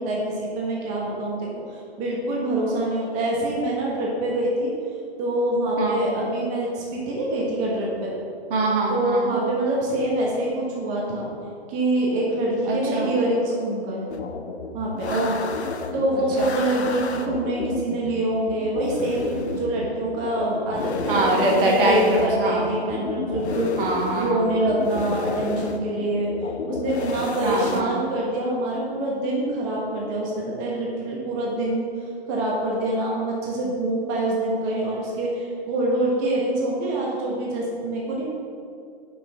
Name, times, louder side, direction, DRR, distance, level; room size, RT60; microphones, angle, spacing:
voice 1, 0.0-4.7 5.2-8.1 8.9-11.3 11.7-14.0 14.7-15.1 15.9-23.7 24.2-26.3 26.7-31.9 32.3-38.3, right 1 dB, 25° right, -4 dB, 1.3 m, -25 dB
voice 2, 8.5-9.4 12.7-13.1 15.1-15.4 16.4-16.5 21.1-22.6 23.8-24.4 27.4-27.9, right 2 dB, 55° right, -2 dB, 1.8 m, -23 dB
sound 1, 14.1-27.8, left 4 dB, 85° left, 0.8 m, -32 dB
6.7 x 5.9 x 4.7 m, 2.4 s
hypercardioid pair, 140°, 33 cm